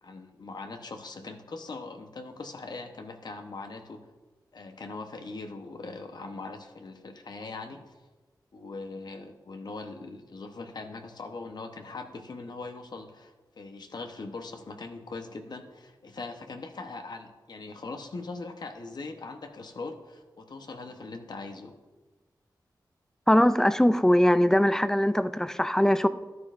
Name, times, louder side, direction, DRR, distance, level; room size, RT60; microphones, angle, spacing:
voice 1, 0.0-4.1 4.5-7.9 8.5-21.8, left 3 dB, 65° left, 5 dB, 0.9 m, -41 dB
voice 2, 23.3-26.1, equal, 5° left, 13 dB, 0.3 m, -21 dB
12.0 x 9.4 x 2.5 m, 1.2 s
wide cardioid pair, 110°, 8 cm